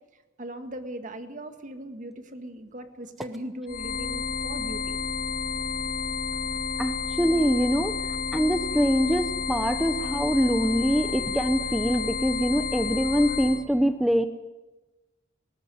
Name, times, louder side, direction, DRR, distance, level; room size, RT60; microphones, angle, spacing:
voice 1, 0.1-5.0, right 1 dB, 40° right, 8 dB, 1.8 m, -39 dB
sound 1, 3.7-13.6, left 5 dB, 45° left, 1.7 m, -30 dB
voice 2, 6.8-14.3, equal, ahead, 8 dB, 0.7 m, -24 dB
19.5 x 19.0 x 9.3 m, 1.1 s
head